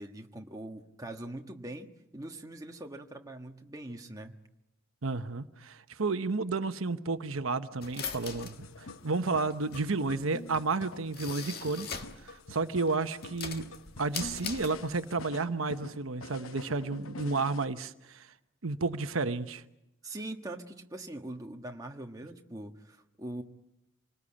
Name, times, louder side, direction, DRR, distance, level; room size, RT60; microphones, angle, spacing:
voice 1, 0.0-4.4 20.0-23.4, right 1 dB, 15° right, 1.4 m, -42 dB
voice 2, 5.0-13.6 14.0-18.3 18.6-19.6, right 3 dB, 85° right, 1.0 m, -32 dB
sound 1, 7.8-12.3 12.6-15.2, left 5 dB, 50° left, 1.7 m, -41 dB
sound 2, 8.3-17.7, left 2 dB, 85° left, 0.9 m, -47 dB
26.5 x 19.5 x 8.7 m
head